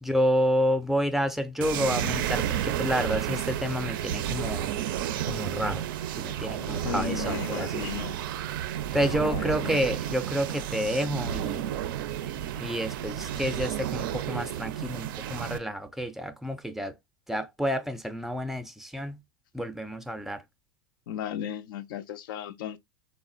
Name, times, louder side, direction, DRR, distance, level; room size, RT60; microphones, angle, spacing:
voice 1, 0.0-4.8 5.3-5.9 6.2-8.0 8.9-11.6 12.6-17.0 17.3-19.2 19.5-20.4, equal, 5° right, 0.4 m, -29 dB
sound 1, 1.6-15.6, right 10 dB, 70° right, 0.4 m, -31 dB
voice 2, 6.7-8.2 9.2-9.8 21.1-22.8, left 10 dB, 70° left, 0.4 m, -35 dB
3.5 x 2.1 x 2.4 m
hypercardioid pair, 100°, 12 cm